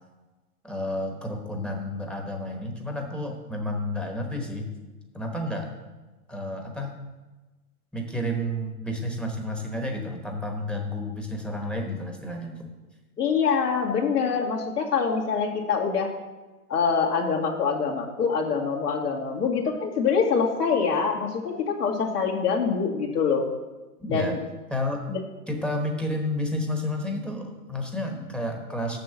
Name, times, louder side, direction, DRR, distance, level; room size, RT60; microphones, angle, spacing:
voice 1, 0.6-4.7 5.1-5.7 6.3-6.9 7.9-12.7 24.1-24.4 24.7-25.0 25.5-29.0, left 1 dB, ahead, 2 dB, 1.0 m, -31 dB
voice 2, 13.2-16.1 16.7-23.5 24.1-24.4 25.1-25.2, left 5 dB, 75° left, -1 dB, 2.3 m, -25 dB
6.9 x 6.6 x 7.1 m, 1.2 s
hypercardioid pair, 115°, 47 cm